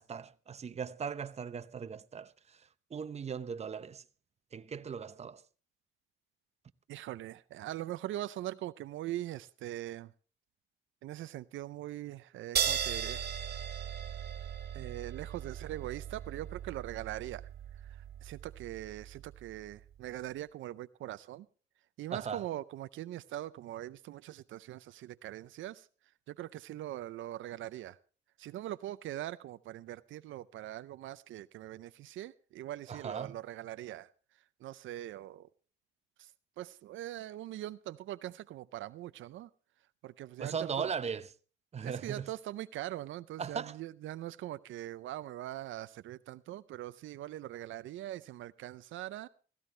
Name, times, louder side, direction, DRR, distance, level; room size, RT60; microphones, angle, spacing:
voice 1, 0.0-4.0 4.5-5.4 22.1-22.5 32.9-33.4 40.4-41.3 41.7-42.3 43.4-43.8, right 6 dB, 35° right, 0.8 m, -38 dB
voice 2, 6.9-10.1 11.0-13.2 14.7-17.4 18.2-21.5 22.0-25.9 26.3-28.0 28.4-34.1 34.6-35.5 36.6-39.5 40.0-40.9 41.8-49.3, right 14 dB, 75° right, 0.5 m, -42 dB
sound 1, 12.6-19.5, right 8 dB, 55° right, 1.8 m, -37 dB
16.5 x 15.0 x 3.3 m
cardioid pair, 90°, 20 cm